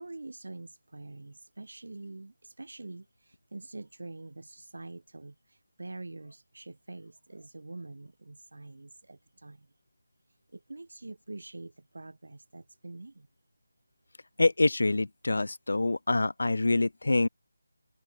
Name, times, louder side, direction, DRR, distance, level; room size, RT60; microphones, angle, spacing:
voice 1, 0.0-9.7 10.5-13.3, right 2 dB, 75° right, 4.7 m, -45 dB
voice 2, 14.4-17.3, left 2 dB, 70° left, 0.4 m, -26 dB
open air
figure-of-eight pair, 175°, 0 cm